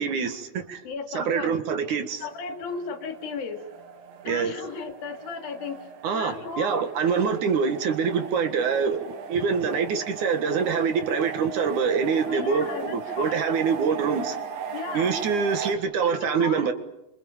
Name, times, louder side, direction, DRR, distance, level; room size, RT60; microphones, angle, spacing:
voice 1, 0.0-0.8 1.1-2.3 4.2-4.5 6.0-14.4 14.9-16.7, right 6 dB, 60° right, 3.0 m, -25 dB
voice 2, 0.8-1.5 2.2-3.6 4.3-5.8 6.1-6.8 12.3-13.4 14.7-15.1 16.0-16.7, left 5 dB, 80° left, 4.3 m, -35 dB
sound 1, 2.2-15.8, right 5 dB, 85° right, 3.5 m, -38 dB
28.5 x 26.0 x 7.3 m
omnidirectional pair, 4.1 m